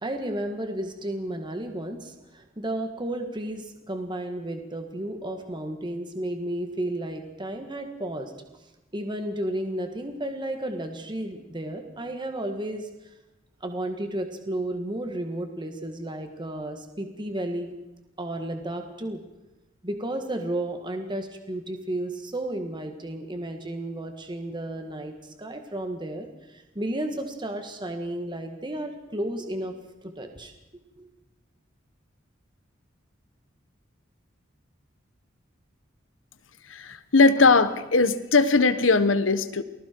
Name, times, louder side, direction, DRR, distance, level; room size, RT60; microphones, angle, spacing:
voice 1, 0.0-8.3 8.9-13.1 13.6-17.7 18.2-19.2 19.8-29.7 30.0-30.5 31.0-31.1, right 1 dB, 25° right, 5 dB, 1.8 m, -33 dB
voice 2, 36.7-39.6, left 3 dB, 85° left, 11 dB, 1.2 m, -20 dB
28.5 x 20.0 x 4.6 m, 1.0 s
head